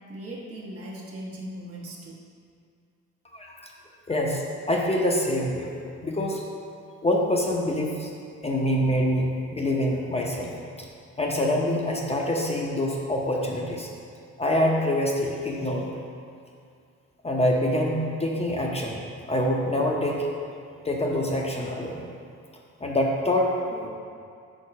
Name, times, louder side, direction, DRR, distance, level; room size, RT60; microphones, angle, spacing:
voice 1, 0.1-2.2 8.4-8.5, right 1 dB, 50° right, -3 dB, 1.2 m, -39 dB
voice 2, 3.3-3.7 4.1-5.7 6.0-6.4 7.0-8.1 8.4-10.5 10.8-10.9 11.2-13.9 14.4-15.9 17.2-19.0 19.3-20.3 20.8-22.1 22.8-23.9, left 1 dB, 20° left, -1 dB, 0.7 m, -25 dB
4.6 x 3.9 x 5.7 m, 2.3 s
cardioid pair, 90°, 30 cm